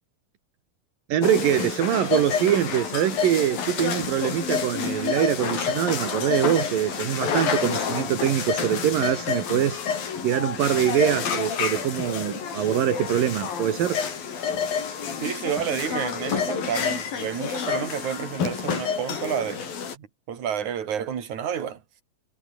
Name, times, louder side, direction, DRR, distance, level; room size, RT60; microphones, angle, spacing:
voice 1, 1.1-9.8 10.2-14.1, right 11 dB, 75° right, 3.4 m, -24 dB
sound 1, 1.2-20.0, left 7 dB, 85° left, 5.6 m, -29 dB
voice 2, 15.2-19.7 20.0-21.8, right 8 dB, 60° right, 4.0 m, -30 dB
omnidirectional pair, 4.0 m